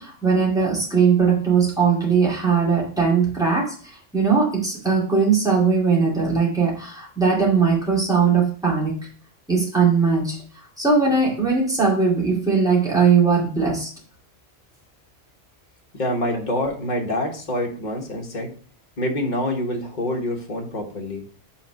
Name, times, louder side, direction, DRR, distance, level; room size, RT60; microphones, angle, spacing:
voice 1, 0.0-8.9 9.5-10.4 10.8-13.9, right 5 dB, 5° right, -5 dB, 2.3 m, -19 dB
voice 2, 15.9-18.5 19.0-21.2, left 1 dB, 45° left, 2 dB, 1.4 m, -26 dB
5.9 x 4.0 x 5.0 m, 0.43 s
omnidirectional pair, 1.1 m